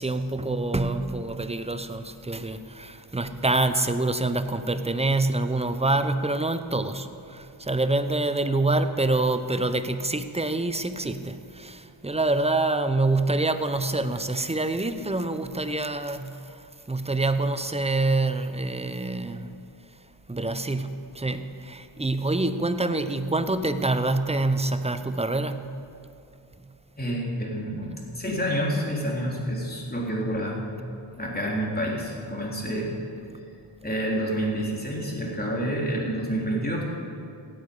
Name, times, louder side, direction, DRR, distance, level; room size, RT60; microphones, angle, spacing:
voice 1, 0.0-19.5 20.3-25.8, right 2 dB, 15° right, 10 dB, 0.8 m, -26 dB
voice 2, 27.0-30.7 31.2-32.9 33.8-36.8, equal, 20° left, -3 dB, 3.7 m, -28 dB
16.5 x 9.6 x 5.4 m, 2.5 s
cardioid pair, 55°, 49 cm